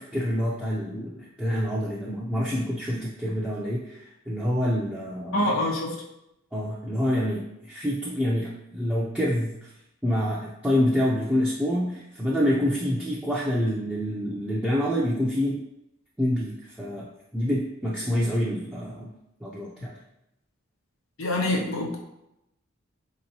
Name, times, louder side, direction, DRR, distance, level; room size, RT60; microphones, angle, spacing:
voice 1, 0.0-5.4 6.5-9.7 10.0-15.6 16.2-17.1 17.3-19.1 19.4-19.9, equal, 5° right, -6 dB, 0.4 m, -27 dB
voice 2, 5.3-5.9 21.2-22.0, left 1 dB, 85° left, -1 dB, 0.8 m, -25 dB
4.4 x 2.9 x 2.8 m, 0.85 s
head